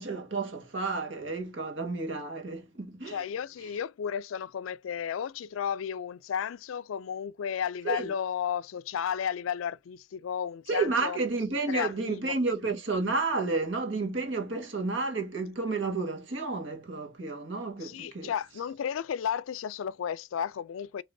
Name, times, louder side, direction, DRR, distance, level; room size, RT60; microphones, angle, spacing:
voice 1, 0.0-3.3 7.8-8.1 10.7-18.3, right 3 dB, 65° right, 1.5 m, -31 dB
voice 2, 3.1-11.2 11.7-12.3 17.8-21.0, left 8 dB, 85° left, 0.4 m, -33 dB
5.2 x 3.0 x 2.6 m
head